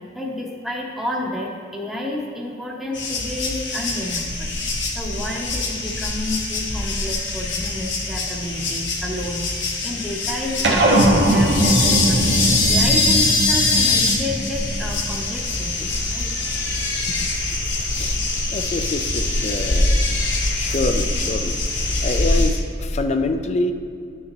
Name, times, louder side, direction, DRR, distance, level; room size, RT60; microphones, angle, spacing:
voice 1, 0.1-12.3 12.7-16.3, left 1 dB, ahead, -3 dB, 0.8 m, -30 dB
sound 1, 2.9-22.5, left 2 dB, 90° left, 1.3 m, -23 dB
sound 2, 10.6-15.4, right 1 dB, 80° right, 1.1 m, -20 dB
voice 2, 18.5-20.0 20.5-23.7, left 2 dB, 35° left, 8 dB, 0.4 m, -26 dB
11.5 x 6.5 x 3.0 m, 2.3 s
head